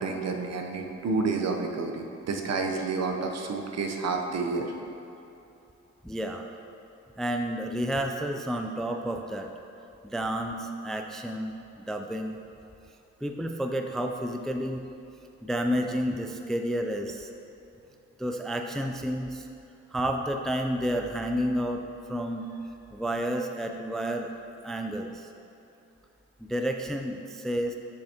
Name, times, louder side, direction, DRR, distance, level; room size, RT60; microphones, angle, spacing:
voice 1, 0.0-4.7, right 4 dB, 60° right, 3 dB, 0.7 m, -30 dB
voice 2, 6.0-6.4 7.2-9.5 10.0-12.4 13.2-14.8 15.4-17.3 18.2-19.5 19.9-21.8 22.1-22.5 22.9-24.3 24.6-25.3 26.4-27.7, equal, ahead, 4 dB, 0.3 m, -30 dB
6.7 x 5.6 x 2.8 m, 2.8 s
cardioid pair, 65°, 30 cm